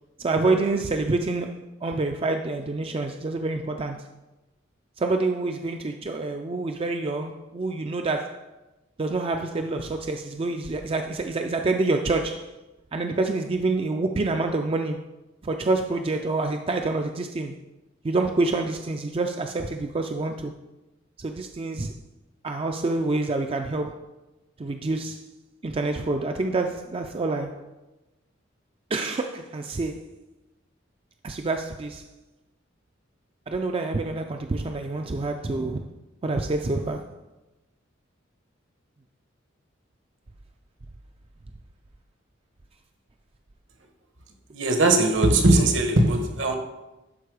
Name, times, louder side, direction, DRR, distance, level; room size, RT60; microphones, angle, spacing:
voice 1, 0.2-4.1 5.0-8.5 9.0-12.6 12.9-15.0 15.4-17.6 18.0-20.5 21.2-21.9 22.4-24.0 24.6-25.3 25.6-27.7 28.9-30.1 31.2-32.0 33.5-35.9 36.2-37.1, right 3 dB, 30° right, 0.4 m, -27 dB
voice 2, 44.5-46.6, right 2 dB, 70° right, 1.3 m, -19 dB
11.5 x 4.4 x 4.8 m
head